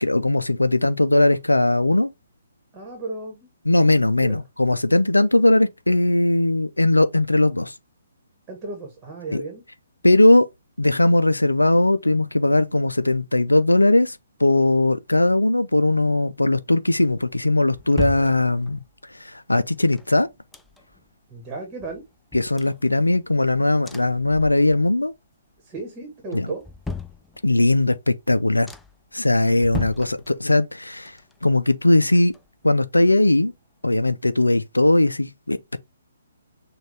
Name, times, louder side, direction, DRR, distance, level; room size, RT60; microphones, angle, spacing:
voice 1, 0.0-2.1 3.7-7.7 9.3-9.4 10.0-10.5 10.8-18.8 19.1-20.3 22.3-25.1 26.3-26.5 27.4-28.7 29.1-31.2 31.4-32.3 32.6-33.5 33.8-35.8, left 2 dB, 85° left, 0.4 m, -19 dB
voice 2, 2.7-3.5 4.2-4.4 8.5-9.6 21.3-22.0 25.6-26.6, right 3 dB, 20° right, 1.4 m, -34 dB
sound 1, 17.3-19.0 19.7-21.1 21.4-21.5 21.8-23.4 23.8-25.0 25.3-25.8 26.3-27.8 28.2-28.3 28.7-29.1 29.6-30.8 31.1-32.9 33.2-33.3, left 3 dB, 5° left, 0.3 m, -38 dB
6.3 x 2.4 x 3.3 m
figure-of-eight pair, 130°, 0 cm